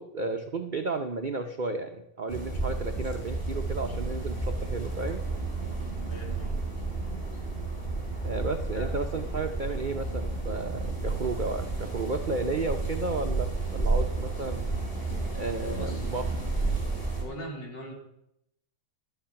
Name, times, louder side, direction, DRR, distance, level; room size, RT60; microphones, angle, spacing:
voice 1, 0.0-5.2 8.2-14.6 15.3-16.5, right 3 dB, 65° right, 5 dB, 0.4 m, -33 dB
sound 1, 2.3-17.2, right 3 dB, 30° left, 4.4 m, -31 dB
voice 2, 6.1-6.6 8.7-9.0 15.7-16.1 17.2-18.0, equal, 85° left, 0 dB, 3.6 m, -40 dB
12.0 x 9.0 x 5.8 m, 0.81 s
omnidirectional pair, 1.9 m